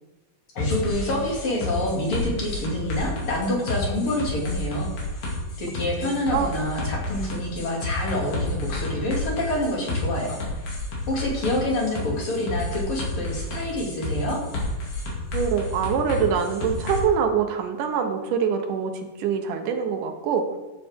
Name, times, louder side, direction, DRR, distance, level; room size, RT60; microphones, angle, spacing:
voice 1, 0.5-4.9 5.6-10.4 11.1-14.4, left 1 dB, 45° left, -3 dB, 3.1 m, -27 dB
sound 1, 0.6-17.0, left 2 dB, 85° left, 3.9 m, -30 dB
voice 2, 6.0-6.5 15.3-20.5, right 7 dB, 85° right, 5 dB, 2.5 m, -24 dB
13.0 x 8.4 x 3.6 m, 1.1 s
omnidirectional pair, 3.6 m